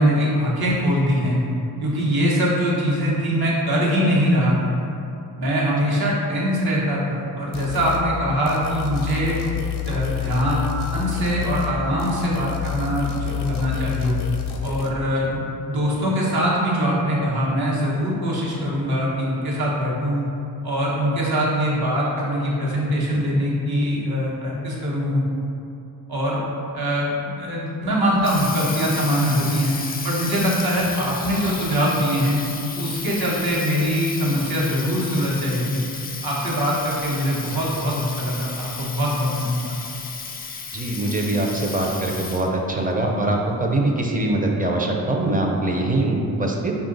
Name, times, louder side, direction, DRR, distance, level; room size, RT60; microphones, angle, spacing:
voice 1, 0.0-1.4 1.8-4.8 5.4-9.4 9.8-14.2 14.6-15.4 15.7-20.2 20.6-25.2 26.1-26.4 26.7-27.1 27.4-29.7 30.0-32.4 32.8-35.8 36.2-39.8, equal, 65° right, -5 dB, 1.1 m, -22 dB
sound 1, 7.5-8.1 8.5-11.7 12.0-14.9, left 10 dB, 75° left, 0.6 m, -28 dB
Water tap faucet, 27.9-42.6, left 5 dB, 25° left, 0.3 m, -33 dB
voice 2, 40.7-46.7, right 2 dB, 20° right, 0 dB, 0.6 m, -23 dB
4.6 x 2.4 x 3.8 m, 2.7 s
cardioid pair, 65°, 40 cm